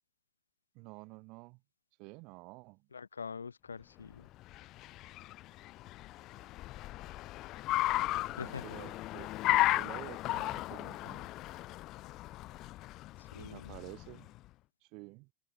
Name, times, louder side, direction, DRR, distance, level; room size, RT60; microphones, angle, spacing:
voice 1, 0.7-1.6 2.0-2.9 8.3-9.3 9.6-11.3 13.4-14.3 14.8-15.3, right 28 dB, 45° right, 3.9 m, -50 dB
voice 2, 2.9-4.3 8.4-8.9 13.2-13.7, left 5 dB, 75° left, 5.7 m, -44 dB
Car, 4.1-14.4, left 17 dB, 35° left, 1.4 m, -35 dB
open air
figure-of-eight pair, 90°, 0 cm